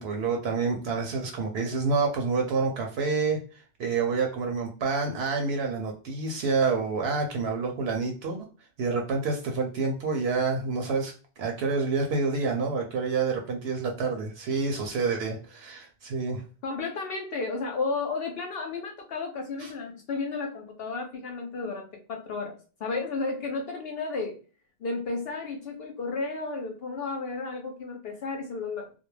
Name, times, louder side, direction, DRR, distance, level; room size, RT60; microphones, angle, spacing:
voice 1, 0.0-3.4 3.8-8.4 8.8-16.4 19.6-19.7, right 4 dB, 70° right, 2 dB, 0.8 m, -28 dB
voice 2, 16.6-24.4 24.8-28.9, left 3 dB, 65° left, 3 dB, 0.7 m, -33 dB
2.3 x 2.1 x 3.0 m, 0.36 s
omnidirectional pair, 1.1 m